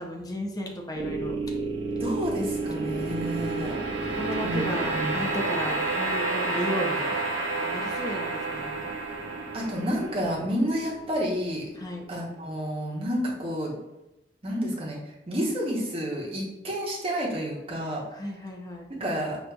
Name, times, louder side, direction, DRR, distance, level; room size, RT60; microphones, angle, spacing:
voice 1, 0.0-1.3 4.1-7.2 7.7-8.9 11.8-12.0 18.1-18.9, equal, 20° left, 1 dB, 0.5 m, -34 dB
sound 1, 1.0-12.2, right 3 dB, 90° right, 0.7 m, -30 dB
voice 2, 2.0-3.8 4.4-4.6 4.9-5.1 7.9-8.0 9.5-11.7 12.1-13.7 14.4-15.0 15.3-18.0 19.0-19.4, equal, 35° right, -4 dB, 0.9 m, -30 dB
5.3 x 2.5 x 2.3 m, 0.92 s
head